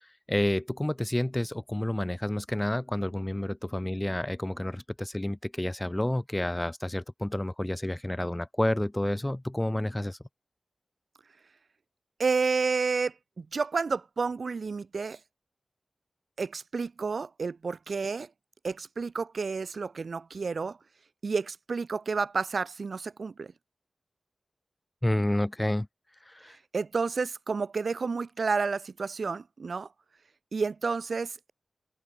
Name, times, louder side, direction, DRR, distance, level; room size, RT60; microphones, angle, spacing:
voice 1, 0.3-10.2 25.0-25.9 26.3-26.6, left 1 dB, 15° left, 1.5 m, -29 dB
voice 2, 12.2-15.2 16.4-18.3 18.6-20.8 21.2-23.5 26.7-29.9 30.5-31.5, right 4 dB, 70° right, 2.8 m, -30 dB
wide cardioid pair, 65°, 0 cm